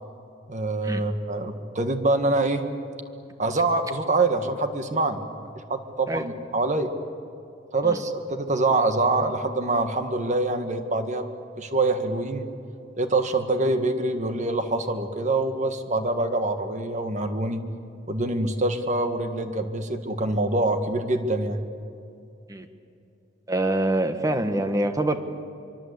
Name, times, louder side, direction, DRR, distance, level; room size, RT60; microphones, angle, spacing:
voice 1, 0.5-2.7 3.4-5.3 5.7-6.9 7.7-11.2 11.6-12.5 13.0-17.6 18.1-21.6, right 2 dB, 40° right, 7 dB, 1.7 m, -25 dB
voice 2, 23.5-25.2, right 1 dB, 20° right, 8 dB, 1.3 m, -25 dB
25.0 x 24.5 x 8.2 m, 2.6 s
head